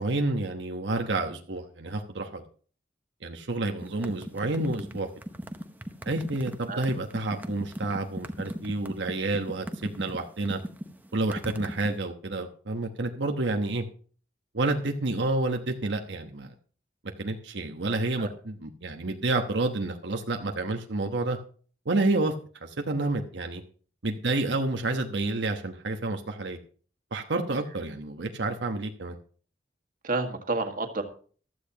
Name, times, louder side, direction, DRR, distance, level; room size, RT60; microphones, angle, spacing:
voice 1, 0.0-2.4 3.2-5.1 6.0-10.6 11.1-13.8 14.5-16.5 17.2-21.4 21.8-22.3 22.6-23.6 24.0-26.6 27.1-29.2, right 2 dB, 90° right, 4 dB, 1.1 m, -29 dB
sound 1, 3.8-12.0, equal, 10° right, 1.0 m, -38 dB
voice 2, 30.0-31.0, right 3 dB, 50° right, 4 dB, 1.8 m, -29 dB
15.0 x 12.5 x 2.9 m, 0.42 s
head